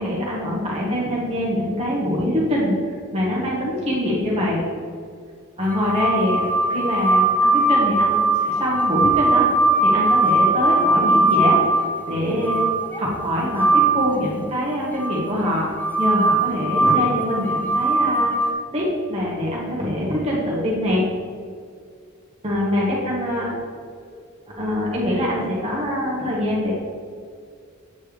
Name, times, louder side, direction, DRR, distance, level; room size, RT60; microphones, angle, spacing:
voice 1, 0.0-4.6 5.6-9.5 9.8-11.6 12.1-12.6 13.0-15.7 16.0-18.3 18.7-21.0 22.4-23.5 24.6-26.7, left 1 dB, 30° right, -5 dB, 1.5 m, -24 dB
sound 1, 5.7-14.2 15.0-18.5, right 2 dB, 10° left, 0.4 m, -20 dB
8.7 x 4.4 x 3.3 m, 2.1 s
head